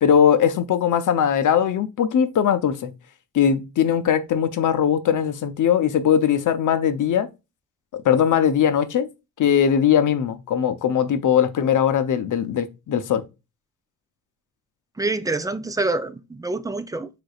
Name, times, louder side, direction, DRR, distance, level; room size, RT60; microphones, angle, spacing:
voice 1, 0.0-2.9 3.3-7.3 7.9-9.1 9.4-13.2, left 8 dB, 50° left, 0.7 m, -20 dB
voice 2, 15.0-17.1, right 2 dB, 10° right, 0.4 m, -26 dB
5.0 x 3.6 x 2.4 m
supercardioid pair, 70°, 39 cm